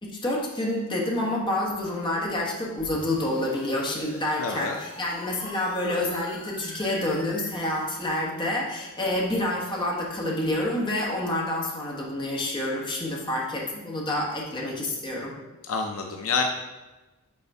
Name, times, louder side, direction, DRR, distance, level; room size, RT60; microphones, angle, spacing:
voice 1, 0.0-15.3, left 1 dB, 20° left, -3 dB, 1.3 m, -28 dB
sound 1, 2.8-7.8, left 1 dB, 50° left, 2.4 m, -43 dB
voice 2, 4.4-4.8 15.6-16.5, left 4 dB, 65° left, 3 dB, 0.6 m, -27 dB
5.8 x 4.3 x 5.4 m, 1.1 s
head